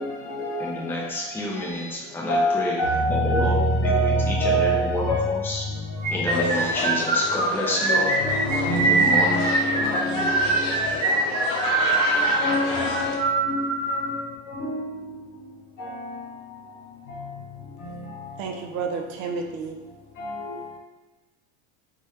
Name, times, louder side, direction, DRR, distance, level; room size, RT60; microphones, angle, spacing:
voice 1, 0.0-1.2 2.3-7.0 7.9-10.7 12.2-15.1 15.8-16.4 17.1-17.3 17.8-18.3 20.2-20.8, equal, 60° left, 1.0 m, -27 dB
voice 2, 0.6-2.7 3.2-4.1 4.5-5.0 5.3-5.6 6.1-8.1 8.7-9.4, left 1 dB, 5° left, 0.5 m, -29 dB
sound 1, 6.0-14.1, right 3 dB, 25° right, 0.8 m, -23 dB
sound 2, 6.3-13.2, left 3 dB, 90° left, 0.7 m, -30 dB
voice 3, 18.4-19.8, right 5 dB, 55° right, 0.5 m, -31 dB
3.1 x 2.4 x 2.8 m
supercardioid pair, 115°, 36 cm